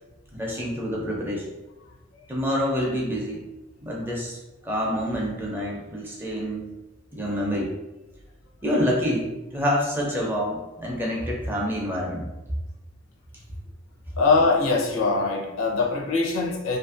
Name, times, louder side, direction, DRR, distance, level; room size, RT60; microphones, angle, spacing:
voice 1, 0.4-1.5 2.3-3.4 3.8-4.4 4.6-6.8 7.1-7.7 8.6-12.3, equal, 10° right, -2 dB, 0.5 m, -27 dB
voice 2, 14.2-16.8, left 3 dB, 80° left, -1 dB, 0.6 m, -22 dB
2.6 x 2.5 x 2.4 m, 1.0 s
head